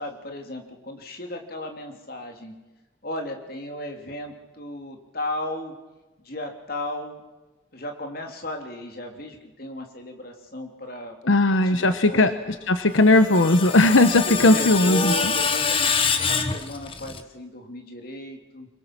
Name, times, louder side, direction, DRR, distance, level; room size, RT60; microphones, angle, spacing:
voice 1, 0.0-2.5 3.0-5.7 6.2-7.2 7.7-12.3 14.4-18.7, left 1 dB, 50° left, 3 dB, 3.0 m, -35 dB
voice 2, 11.3-15.3, left 2 dB, 90° left, 10 dB, 1.1 m, -18 dB
Screech, 12.9-17.2, left 5 dB, 30° left, 1.3 m, -26 dB
25.0 x 23.0 x 6.0 m, 1.1 s
head